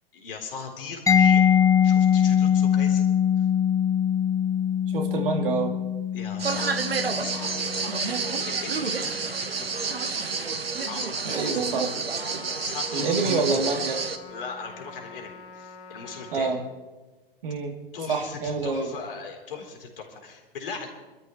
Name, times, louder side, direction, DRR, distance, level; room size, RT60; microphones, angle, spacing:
voice 1, 0.1-1.4 1.8-3.1 3.4-3.5 6.1-10.0 10.9-11.8 12.3-13.6 14.3-16.5 17.9-20.9, left 5 dB, 70° left, 3 dB, 3.6 m, -39 dB
Mallet percussion, 1.1-8.6, left 8 dB, 10° left, 0.7 m, -22 dB
voice 2, 4.9-5.7 11.2-11.9 12.9-14.0 16.3-16.6 17.4-17.7 18.1-18.9, right 4 dB, 65° right, 2 dB, 2.9 m, -27 dB
sound 1, 6.4-14.2, right 4 dB, 85° right, 1.2 m, -29 dB
Trumpet, 12.1-16.6, left 5 dB, 35° left, 3.6 m, -45 dB
27.0 x 13.0 x 3.1 m, 1.2 s
figure-of-eight pair, 95°, 29 cm